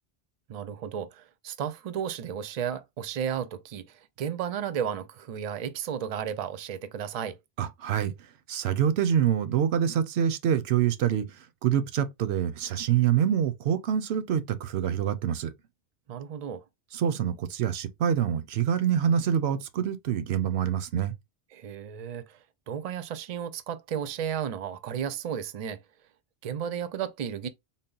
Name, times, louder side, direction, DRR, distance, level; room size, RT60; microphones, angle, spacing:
voice 1, 0.5-7.4 16.1-16.6 21.5-25.8 26.4-27.5, right 8 dB, 50° right, 0.5 m, -33 dB
voice 2, 7.6-8.1 8.5-15.5 16.9-21.1, right 9 dB, 90° right, 0.8 m, -26 dB
4.0 x 2.0 x 3.7 m
omnidirectional pair, 1.1 m